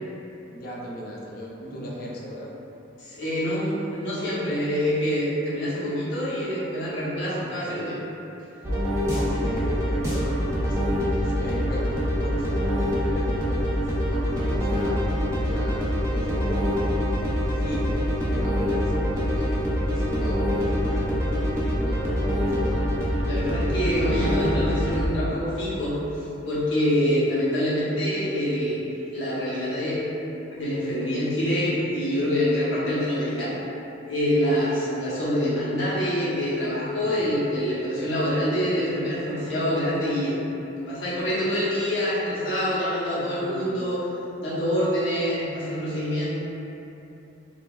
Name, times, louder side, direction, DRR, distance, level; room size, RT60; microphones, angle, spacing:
voice 1, 0.5-2.6 7.2-7.9 9.1-15.0 15.4-17.1 17.5-18.0 18.3-22.9 37.0-37.3 43.2-43.9, equal, 50° left, -4 dB, 0.4 m, -37 dB
voice 2, 3.0-8.0 23.3-28.8 29.1-30.0 30.5-33.5 34.1-40.3 40.9-44.0 44.4-46.3, equal, 75° left, -9 dB, 0.8 m, -26 dB
sound 1, 8.6-25.0, equal, 15° right, 0.4 m, -25 dB
2.9 x 2.3 x 2.2 m, 3.0 s
head